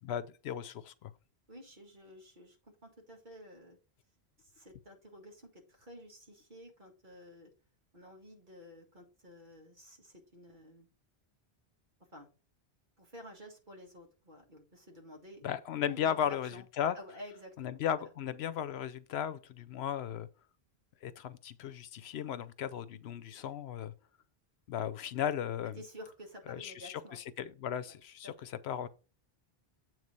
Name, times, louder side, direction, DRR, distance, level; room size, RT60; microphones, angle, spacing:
voice 1, 0.0-1.1 15.4-17.0 17.6-20.3 21.0-23.9 24.7-25.8 26.5-28.9, left 9 dB, 80° left, 0.9 m, -36 dB
voice 2, 1.5-2.6 2.8-3.8 4.4-7.5 7.9-10.9 12.1-12.3 13.0-15.4 15.8-16.7 17.0-18.1 25.8-27.2 27.9-28.0 28.2-28.3, equal, 50° right, 1.9 m, -51 dB
7.8 x 3.1 x 5.3 m
omnidirectional pair, 1.1 m